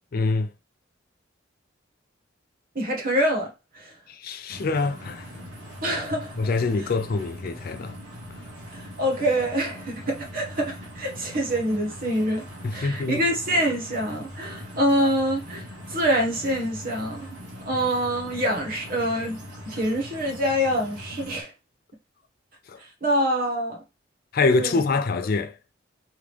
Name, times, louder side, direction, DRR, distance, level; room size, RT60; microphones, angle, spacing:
voice 1, 0.1-0.5 4.1-5.3 6.4-8.0 12.6-13.2 22.7-22.8 24.3-25.6, left 3 dB, 50° left, 0.4 m, -25 dB
voice 2, 2.7-3.9 5.8-6.3 8.7-12.4 12.7-17.3 17.7-21.5 23.0-23.8 24.5-24.8, equal, 45° right, 1.2 m, -25 dB
sound 1, 4.5-21.4, equal, 65° right, 1.8 m, -41 dB
3.5 x 3.1 x 3.4 m
head